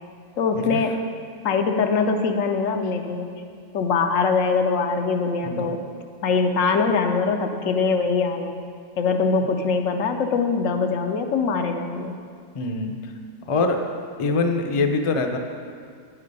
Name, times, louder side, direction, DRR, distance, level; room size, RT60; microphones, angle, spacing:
voice 1, 0.4-0.9 1.4-3.3 3.7-5.8 6.2-8.5 9.0-12.1, left 4 dB, 85° left, 5 dB, 1.0 m, -22 dB
voice 2, 12.5-12.9 13.5-13.8 14.2-15.4, left 3 dB, 45° left, 4 dB, 0.4 m, -23 dB
8.5 x 5.6 x 5.3 m, 2.2 s
omnidirectional pair, 1.3 m